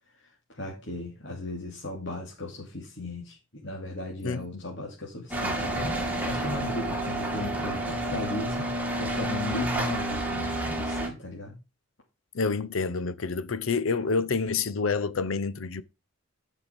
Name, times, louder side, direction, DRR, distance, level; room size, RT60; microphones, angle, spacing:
voice 1, 0.2-3.4 3.6-5.9 6.2-11.5, left 2 dB, 60° left, 2.7 m, -36 dB
voice 2, 4.2-4.6 12.3-15.8, left 4 dB, 90° left, 0.7 m, -28 dB
sound 1, 5.3-11.1, right 1 dB, 10° right, 2.1 m, -30 dB
10.5 x 5.9 x 5.2 m
head